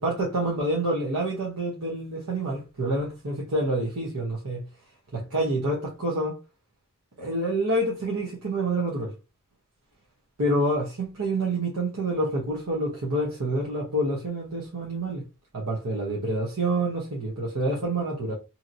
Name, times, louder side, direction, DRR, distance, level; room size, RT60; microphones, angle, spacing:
voice 1, 0.0-4.6 5.1-6.4 7.2-9.1 10.4-15.2 15.5-18.3, right 1 dB, 80° right, 0.9 m, -27 dB
2.8 x 2.7 x 2.5 m
head